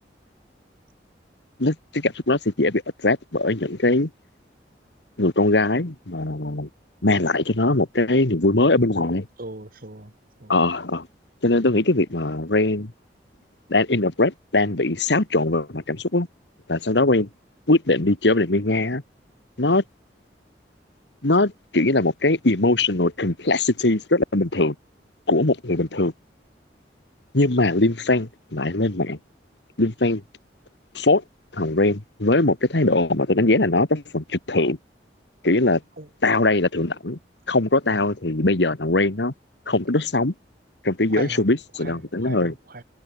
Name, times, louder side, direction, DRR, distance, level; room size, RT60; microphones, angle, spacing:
voice 1, 1.6-4.1 5.2-6.7 7.0-9.3 10.5-11.1 11.4-12.9 13.7-16.3 16.7-17.3 17.7-19.0 19.6-19.8 21.2-24.8 25.3-26.1 27.3-29.2 29.8-30.2 30.9-31.2 31.5-34.8 35.4-35.8 36.2-37.2 37.5-39.3 39.7-40.3 40.8-42.6, left 2 dB, 75° left, 1.8 m, -21 dB
voice 2, 9.4-10.1 10.4-10.6 36.0-36.1 41.1-41.4 41.8-42.8, right 2 dB, 55° right, 2.6 m, -38 dB
head